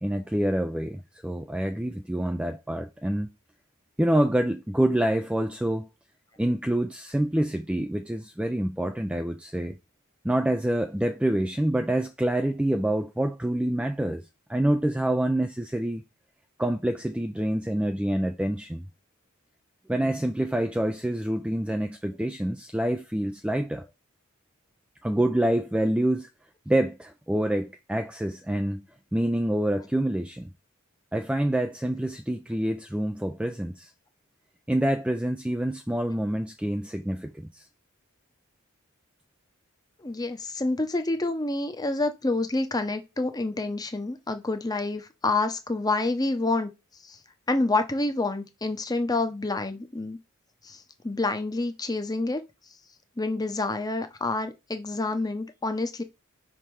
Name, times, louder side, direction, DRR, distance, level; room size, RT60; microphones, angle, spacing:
voice 1, 0.0-3.3 4.0-5.9 6.4-9.8 10.2-14.2 14.5-16.0 16.6-18.9 19.9-23.9 25.0-26.3 26.7-28.9 29.1-30.5 31.1-33.9 34.7-37.6, right 1 dB, 5° right, 0.3 m, -26 dB
voice 2, 40.0-46.7 47.1-47.2 47.5-50.2 50.6-52.4 53.2-56.0, left 2 dB, 15° left, 0.8 m, -28 dB
5.6 x 3.6 x 4.7 m
head